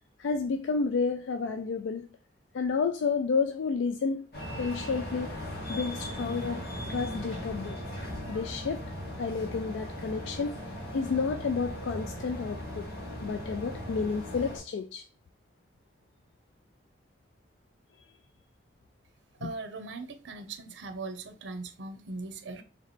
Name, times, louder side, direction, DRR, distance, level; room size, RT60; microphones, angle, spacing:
voice 1, 0.2-2.1 2.5-4.3 4.6-5.3 5.7-6.6 6.9-7.8 8.3-8.8 9.2-10.6 10.9-12.9 13.2-15.0 19.4-19.5, left 5 dB, 85° left, 0.3 m, -30 dB
sound 1, 4.3-14.6, equal, 55° left, 1.6 m, -38 dB
voice 2, 19.4-22.6, right 3 dB, 85° right, 0.7 m, -40 dB
3.1 x 3.0 x 4.1 m
head